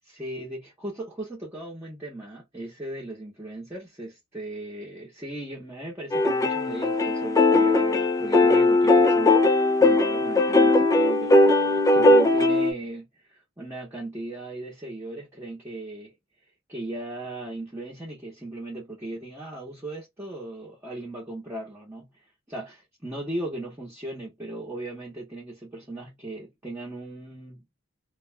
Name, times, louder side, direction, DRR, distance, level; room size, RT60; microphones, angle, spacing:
voice 1, 0.1-16.1 16.7-22.1 22.5-27.6, right 1 dB, 10° right, 0.9 m, -37 dB
sound 1, 6.1-12.7, left 2 dB, 15° left, 0.4 m, -19 dB
2.3 x 2.2 x 3.2 m
head